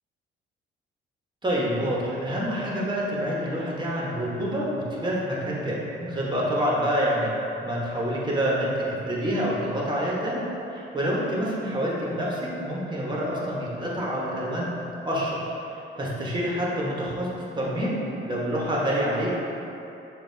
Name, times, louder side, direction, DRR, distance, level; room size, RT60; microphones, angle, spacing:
voice 1, 1.4-7.3 7.6-10.4 10.7-14.7 15.0-15.4 16.0-17.3 17.5-18.0 18.2-19.3, equal, 20° right, -5 dB, 1.1 m, -27 dB
6.9 x 2.4 x 2.7 m, 2.9 s
cardioid pair, 90°, 20 cm